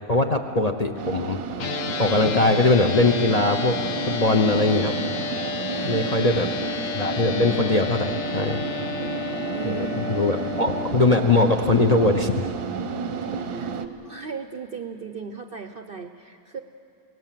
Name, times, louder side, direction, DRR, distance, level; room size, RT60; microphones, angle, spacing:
voice 1, 0.1-1.4 2.0-3.8 4.1-5.0 5.8-6.5 6.9-8.6 9.6-12.5, left 2 dB, 35° left, 5 dB, 0.7 m, -21 dB
sound 1, 1.0-13.9, right 5 dB, 90° right, 1.5 m, -32 dB
sound 2, 1.6-10.9, left 6 dB, 60° left, 1.3 m, -31 dB
voice 2, 5.7-6.5 9.5-10.2 13.4-13.7 14.0-16.6, right 6 dB, 50° right, 7 dB, 0.7 m, -37 dB
25.0 x 18.5 x 7.5 m, 2.6 s
omnidirectional pair, 1.7 m